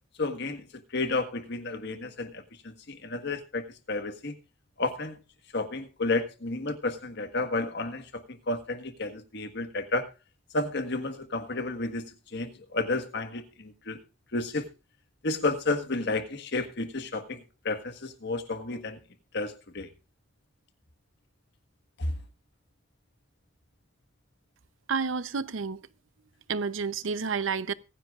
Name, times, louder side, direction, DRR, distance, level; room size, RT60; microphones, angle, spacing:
voice 1, 0.2-0.6 0.9-2.4 2.9-4.3 4.8-5.2 5.5-8.2 8.5-10.1 10.5-12.0 12.3-14.0 14.3-14.7 15.2-17.4 17.6-19.0 19.3-19.9 22.0-22.1, left 2 dB, 60° left, 1.5 m, -31 dB
voice 2, 24.9-25.8 26.5-27.7, right 5 dB, 90° right, 0.7 m, -30 dB
23.5 x 10.0 x 2.4 m
head